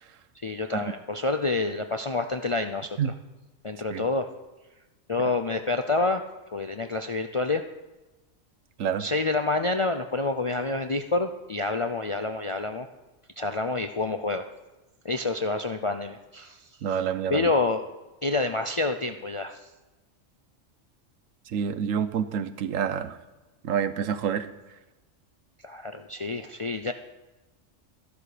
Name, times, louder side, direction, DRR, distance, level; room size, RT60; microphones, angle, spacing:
voice 1, 0.4-3.0 3.6-4.3 5.1-6.2 6.5-7.6 9.0-12.9 13.4-14.5 15.0-16.7 17.3-17.8 18.2-19.6 25.6-26.9, left 3 dB, 55° left, 7 dB, 0.3 m, -28 dB
voice 2, 16.8-17.5 21.5-23.2 23.6-24.5, right 8 dB, 90° right, 12 dB, 1.2 m, -28 dB
13.5 x 12.0 x 5.0 m, 1.1 s
omnidirectional pair, 1.3 m